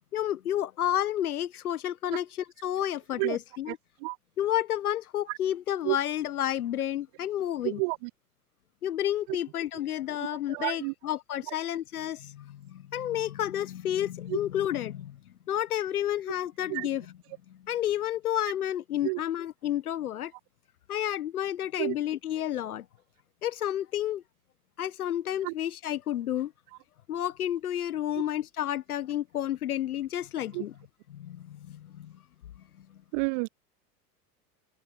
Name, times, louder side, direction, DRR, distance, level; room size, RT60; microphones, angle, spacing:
voice 1, 0.1-3.8 4.4-7.8 8.8-15.2 15.5-17.2 17.5-20.3 20.9-22.8 23.4-24.2 24.8-26.5 27.1-30.8 31.1-32.1, left 11 dB, 65° left, 1.3 m, -31 dB
voice 2, 7.6-8.0 10.5-10.9 16.7-16.9 19.0-19.2 21.8-21.9 25.4-25.5 30.5-30.6 33.1-33.5, right 35 dB, 30° right, 0.4 m, -29 dB
figure-of-eight pair, 85°, 47 cm